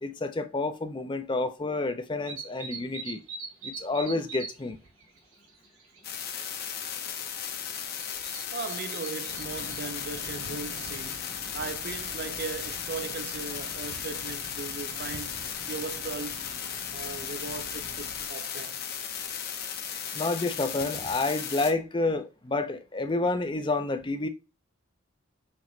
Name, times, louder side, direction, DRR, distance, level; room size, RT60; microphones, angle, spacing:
voice 1, 0.0-3.2 3.6-4.8 20.1-24.3, left 2 dB, 20° left, 0.4 m, -29 dB
sound 1, 2.3-4.6 4.9-6.1 6.4-7.0 7.9-9.8, right 5 dB, 80° right, 1.3 m, -41 dB
sound 2, 6.0-21.7, left 8 dB, 45° left, 0.8 m, -36 dB
voice 2, 8.5-11.2 11.5-16.5 16.9-18.8, right 4 dB, 45° right, 0.5 m, -38 dB
sound 3, 9.3-18.3, left 2 dB, 70° left, 1.1 m, -46 dB
5.8 x 3.0 x 3.1 m
head